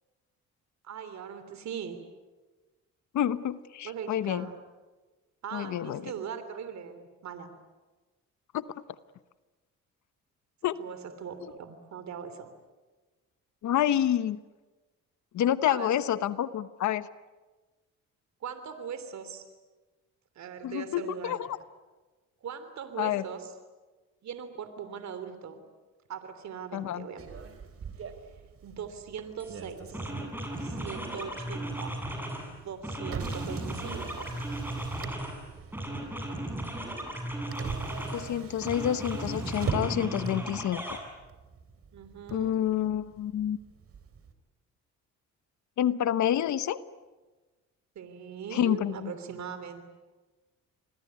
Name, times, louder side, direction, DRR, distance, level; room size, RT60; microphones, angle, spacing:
voice 1, 0.8-2.0 3.8-4.6 5.4-7.5 10.8-12.5 15.6-15.9 18.4-19.4 20.3-21.4 22.4-23.5 24.2-25.6 26.1-27.2 28.6-30.1 30.6-31.9 32.4-34.3 41.9-42.7 47.9-49.8, right 7 dB, 65° right, 10 dB, 3.2 m, -40 dB
voice 2, 3.1-4.5 5.5-6.0 8.5-8.6 10.6-10.8 13.6-14.4 15.3-17.1 20.6-21.4 23.0-23.2 26.7-27.1 38.1-41.0 42.3-43.6 45.8-46.8 48.5-49.1, left 11 dB, 70° left, 14 dB, 1.0 m, -28 dB
Motor vehicle (road), 27.2-44.3, right 5 dB, 50° right, 3.7 m, -42 dB
sound 1, 29.4-29.6 29.9-32.5 32.8-35.4 35.7-38.3 38.6-41.0, right 1 dB, 5° right, 8.0 m, -36 dB
28.0 x 21.5 x 9.6 m, 1.2 s
cardioid pair, 90°, 30 cm